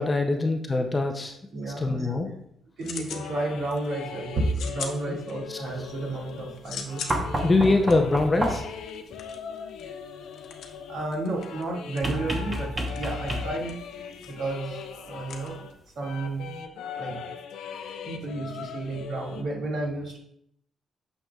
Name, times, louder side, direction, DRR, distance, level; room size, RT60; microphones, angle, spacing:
voice 1, 0.0-1.4 1.8-2.3 5.1-5.2 5.5-5.6 7.4-8.6, left 2 dB, 15° left, 4 dB, 0.5 m, -23 dB
voice 2, 1.5-2.3 2.8-7.0 10.9-13.8 14.2-15.6 16.0-16.5 16.9-17.2 18.0-20.2, right 2 dB, 55° right, -2 dB, 1.9 m, -32 dB
sound 1, 2.1-3.3 3.6-4.1 4.5-5.7 6.1-16.1, left 6 dB, 60° left, 0.9 m, -42 dB
sound 2, 3.0-15.7 16.0-19.4, left 7 dB, 85° left, 0.6 m, -40 dB
sound 3, 7.1-8.8 12.0-13.8 15.3-15.4, right 1 dB, 15° right, 0.9 m, -30 dB
8.9 x 6.5 x 2.3 m, 0.70 s
cardioid pair, 175°, 0 cm